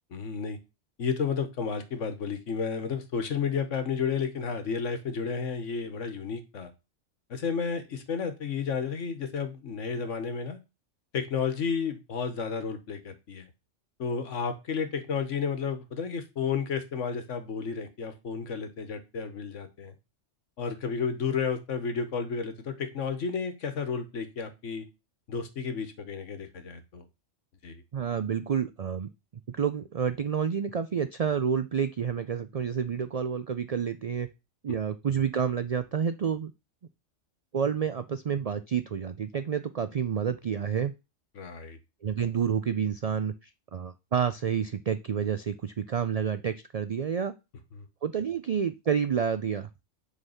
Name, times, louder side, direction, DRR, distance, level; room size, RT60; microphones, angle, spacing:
voice 1, 0.1-0.6 1.0-6.7 7.3-10.6 11.1-13.5 14.0-19.9 20.6-24.9 25.3-27.0 27.6-27.8 34.7-34.8 41.3-41.8 47.7-47.9, left 6 dB, 75° left, 9 dB, 1.5 m, -32 dB
voice 2, 27.9-29.1 29.5-34.3 34.6-36.5 37.5-40.9 42.0-47.3 48.0-49.7, right 7 dB, 75° right, 11 dB, 0.3 m, -29 dB
8.0 x 4.0 x 5.6 m, 0.26 s
omnidirectional pair, 1.3 m